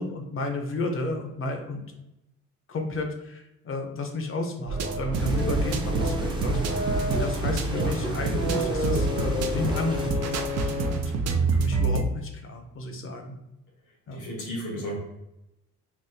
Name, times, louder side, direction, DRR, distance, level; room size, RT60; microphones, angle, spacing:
voice 1, 0.0-1.9 2.7-6.8 7.1-13.4 14.1-14.3, left 2 dB, 45° left, 4 dB, 0.7 m, -32 dB
sound 1, 4.7-11.2, left 2 dB, 65° left, 1.0 m, -32 dB
sound 2, 4.7-12.0, right 4 dB, 60° right, 0.4 m, -28 dB
sound 3, 5.1-10.1, right 2 dB, 15° right, 0.6 m, -34 dB
voice 2, 14.1-15.0, equal, 85° left, -2 dB, 1.4 m, -33 dB
3.9 x 2.2 x 2.6 m, 0.89 s
cardioid pair, 90°, 30 cm